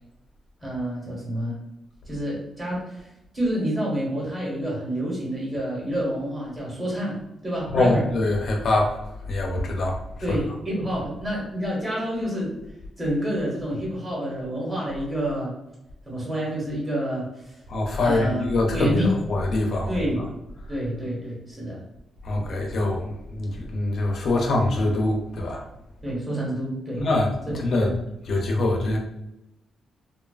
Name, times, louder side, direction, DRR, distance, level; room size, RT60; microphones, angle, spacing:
voice 1, 0.6-1.6 2.1-3.1 3.3-7.2 7.4-8.0 10.2-12.5 13.0-15.5 16.0-17.6 18.0-18.4 18.7-19.1 19.9-20.2 20.7-21.8 26.0-27.0 27.4-27.5 27.8-28.0, equal, 20° right, -5 dB, 1.0 m, -28 dB
voice 2, 7.7-9.0 9.3-10.0 10.3-10.4 17.7-19.9 22.2-25.6 27.0-28.0 28.3-29.0, left 2 dB, 50° left, 1 dB, 0.4 m, -24 dB
2.6 x 2.2 x 2.3 m, 0.88 s
wide cardioid pair, 155°, 0 cm